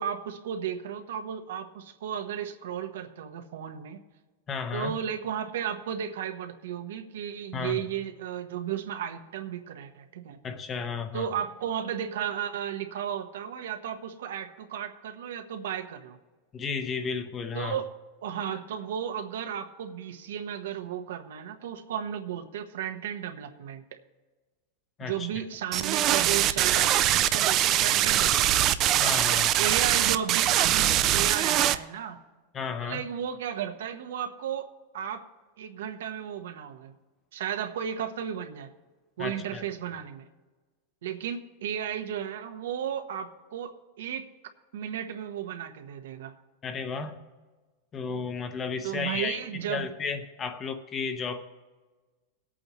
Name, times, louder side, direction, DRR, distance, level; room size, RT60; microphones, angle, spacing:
voice 1, 0.0-4.0 4.7-10.4 11.1-16.2 17.5-17.9 18.2-23.8 25.0-28.8 29.3-32.2 32.8-35.2 35.6-36.9 37.3-38.7 39.2-40.3 41.0-44.3 44.7-46.3 48.8-49.9, right 9 dB, 85° right, 6 dB, 1.1 m, -34 dB
voice 2, 4.5-5.0 7.5-7.8 10.4-11.3 16.5-17.8 25.0-25.3 29.0-29.5 32.5-33.0 39.2-39.6 46.6-47.2 47.9-49.4 49.7-51.5, left 5 dB, 20° left, 8 dB, 0.7 m, -33 dB
sound 1, 25.7-31.8, right 12 dB, 30° right, 0.3 m, -23 dB
19.5 x 8.5 x 3.1 m, 1.3 s
supercardioid pair, 175°, 0 cm